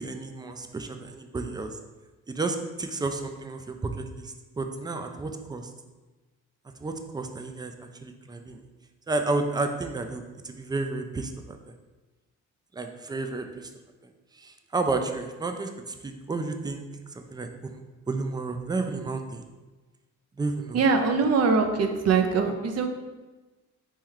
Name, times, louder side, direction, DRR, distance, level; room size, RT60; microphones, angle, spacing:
voice 1, 0.0-1.8 2.3-5.7 6.8-8.7 9.1-11.7 12.7-13.7 14.3-16.8 17.2-17.8 18.1-19.4 20.4-20.8, right 3 dB, 15° right, 5 dB, 0.4 m, -32 dB
voice 2, 20.7-22.9, right 4 dB, 55° right, 5 dB, 0.6 m, -22 dB
4.2 x 3.1 x 3.8 m, 1.2 s
cardioid pair, 90°, 30 cm